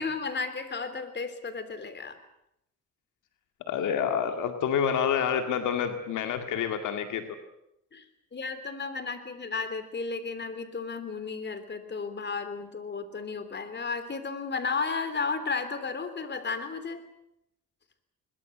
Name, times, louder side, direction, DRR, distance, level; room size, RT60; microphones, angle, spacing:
voice 1, 0.0-2.2 7.9-8.0 8.3-17.0, left 4 dB, 35° left, 11 dB, 3.5 m, -33 dB
voice 2, 3.7-7.4, left 8 dB, 80° left, 7 dB, 2.1 m, -28 dB
22.5 x 21.5 x 8.0 m, 0.80 s
cardioid pair, 90°, 30 cm